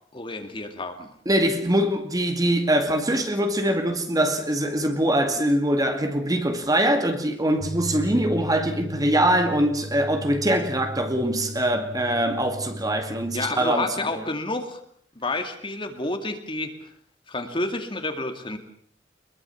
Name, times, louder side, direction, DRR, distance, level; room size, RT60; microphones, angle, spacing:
voice 1, 0.1-1.1 13.3-14.8 15.2-16.7 17.3-18.6, left 2 dB, 30° left, 2.3 m, -29 dB
voice 2, 1.3-14.3, right 1 dB, 20° right, 2.3 m, -23 dB
sound 1, 7.6-13.5, left 1 dB, 55° right, 4.1 m, -36 dB
23.5 x 22.0 x 7.1 m
head